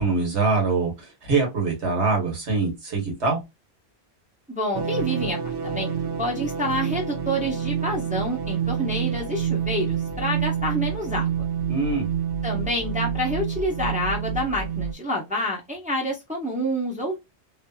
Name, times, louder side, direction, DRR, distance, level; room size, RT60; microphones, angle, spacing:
voice 1, 0.0-3.4 11.7-12.1, right 4 dB, 85° right, 1.7 m, -24 dB
voice 2, 4.5-11.3 12.4-17.2, equal, 10° right, 0.8 m, -28 dB
sound 1, 4.7-14.9, right 8 dB, 65° right, 0.7 m, -28 dB
3.1 x 2.6 x 2.3 m
omnidirectional pair, 1.1 m